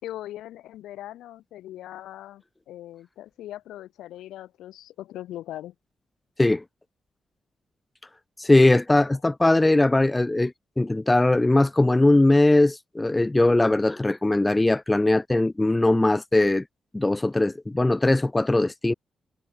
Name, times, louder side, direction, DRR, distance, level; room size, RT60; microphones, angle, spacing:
voice 1, 0.0-5.7, left 13 dB, 80° left, 3.3 m, -40 dB
voice 2, 8.4-16.6 16.9-18.9, left 2 dB, 20° left, 0.7 m, -20 dB
hypercardioid pair, 45°, 0 cm